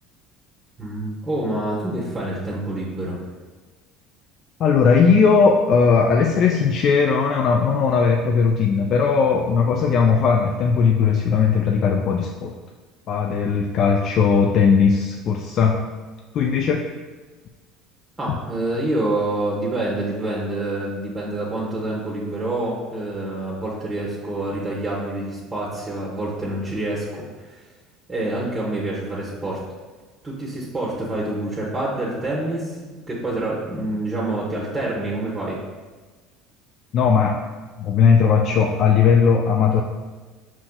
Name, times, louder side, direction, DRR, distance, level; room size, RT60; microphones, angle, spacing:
voice 1, 0.8-3.2 18.2-27.1 27.4-27.6 28.1-29.6 30.2-35.6, right 2 dB, 20° right, -5 dB, 0.9 m, -27 dB
voice 2, 4.6-12.5 13.1-15.8 16.3-16.8 18.3-18.4 36.9-37.4 37.8-39.8, left 5 dB, 50° left, 2 dB, 0.3 m, -18 dB
5.6 x 3.0 x 2.2 m, 1.3 s
hypercardioid pair, 70°, 0 cm